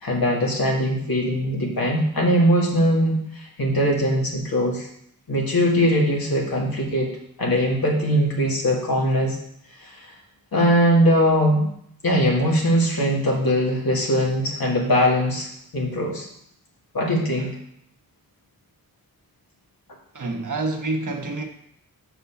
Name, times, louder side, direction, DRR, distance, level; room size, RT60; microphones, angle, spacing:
voice 1, 0.0-4.9 5.3-7.1 7.4-9.4 9.8-10.1 10.5-11.7 12.0-15.5 15.7-16.3 16.9-17.5, equal, 75° left, -2 dB, 2.2 m, -21 dB
voice 2, 20.1-21.5, right 2 dB, 55° right, 3 dB, 1.3 m, -27 dB
6.1 x 5.6 x 7.1 m, 0.72 s
wide cardioid pair, 90°, 36 cm